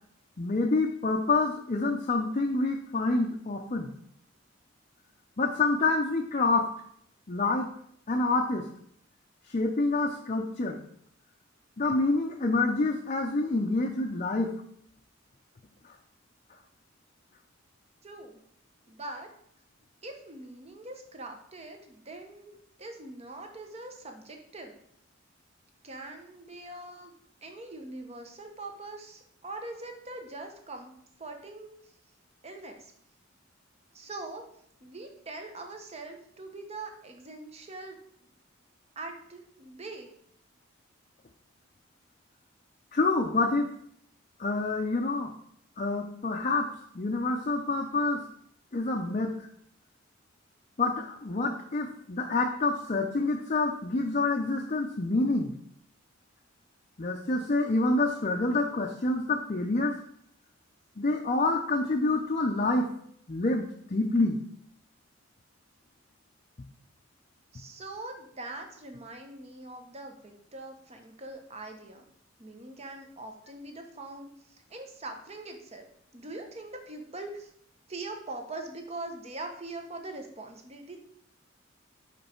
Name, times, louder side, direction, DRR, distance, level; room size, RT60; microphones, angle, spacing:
voice 1, 0.4-3.9 5.4-6.7 7.3-7.7 8.1-8.7 9.5-10.8 11.8-14.5 42.9-43.7 44.4-45.3 45.8-46.7 46.9-48.2 48.7-49.3 50.8-55.5 57.0-60.0 61.0-62.9 63.3-64.4, left 2 dB, 40° left, 1 dB, 0.5 m, -27 dB
voice 2, 18.0-18.4 18.9-19.3 20.0-24.7 25.8-27.1 27.4-30.9 31.2-31.7 32.4-32.9 33.9-34.4 34.8-38.0 39.0-40.1 67.5-72.0 72.4-74.3 74.7-75.9 76.1-77.5 77.9-81.0, right 2 dB, 35° right, 4 dB, 0.9 m, -42 dB
5.5 x 5.2 x 4.4 m, 0.69 s
head